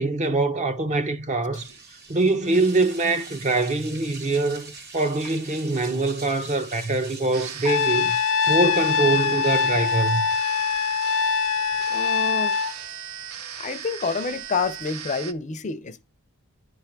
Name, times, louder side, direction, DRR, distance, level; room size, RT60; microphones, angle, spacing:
voice 1, 0.0-1.7 2.1-8.2 8.5-10.3, right 2 dB, 35° right, 0.7 m, -24 dB
sound 1, 1.5-15.1, right 3 dB, 50° right, 1.6 m, -44 dB
sound 2, 7.3-15.3, right 9 dB, 75° right, 0.7 m, -37 dB
Trumpet, 7.7-12.7, left 6 dB, 85° left, 0.6 m, -23 dB
voice 2, 11.9-12.5 13.6-16.0, left 4 dB, 35° left, 0.5 m, -28 dB
10.0 x 3.4 x 5.9 m
head